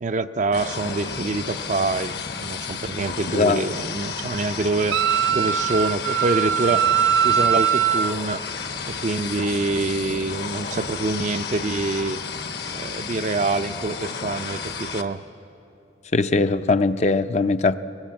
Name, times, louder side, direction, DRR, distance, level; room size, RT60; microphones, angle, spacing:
voice 1, 0.0-5.0 5.3-6.9 7.2-8.4 8.9-12.2 12.7-15.2, right 3 dB, 40° right, 0.5 m, -26 dB
sound 1, 0.5-15.0, left 5 dB, 60° left, 1.1 m, -32 dB
voice 2, 3.3-3.6 16.1-17.8, left 3 dB, 40° left, 0.5 m, -20 dB
Wind instrument woodwind instrument, 4.9-8.1, right 9 dB, 85° right, 0.6 m, -21 dB
23.5 x 19.5 x 7.6 m
head